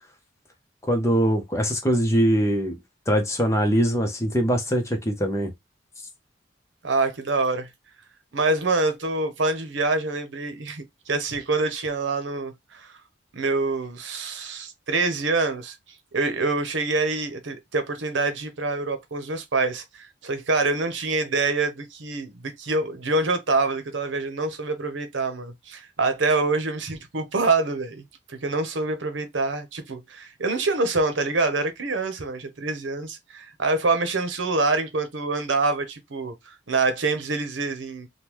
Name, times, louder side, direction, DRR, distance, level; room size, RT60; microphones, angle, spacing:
voice 1, 0.8-2.8 3.1-5.5, equal, 15° left, 0.8 m, -22 dB
voice 2, 6.8-7.7 8.3-12.9 13.3-15.8 16.1-28.0 28.4-38.1, right 3 dB, 80° right, 0.8 m, -26 dB
3.6 x 2.2 x 2.9 m
head